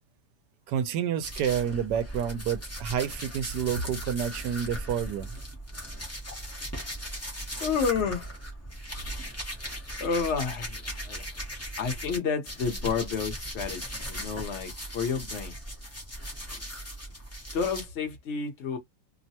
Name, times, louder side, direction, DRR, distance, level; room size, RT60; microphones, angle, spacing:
voice 1, 0.7-5.3, right 8 dB, 80° right, 1.2 m, -29 dB
sound 1, 1.2-12.2 12.4-17.8, equal, 15° left, 0.7 m, -38 dB
voice 2, 7.6-8.3 10.0-11.4 11.8-15.6 16.5-16.7 17.5-18.8, left 5 dB, 50° left, 1.0 m, -30 dB
3.1 x 2.1 x 2.7 m
omnidirectional pair, 1.8 m